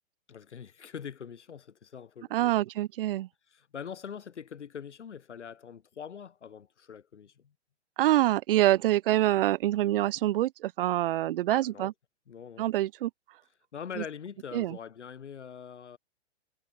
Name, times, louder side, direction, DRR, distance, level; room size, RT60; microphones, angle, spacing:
voice 1, 0.3-2.6 3.5-7.5 11.5-11.9 12.3-12.7 13.7-16.0, left 7 dB, 90° left, 0.8 m, -43 dB
voice 2, 2.3-3.3 8.0-11.9 12.6-13.1 14.0-14.1 14.5-14.8, right 14 dB, 55° right, 0.4 m, -26 dB
hypercardioid pair, 120°, 34 cm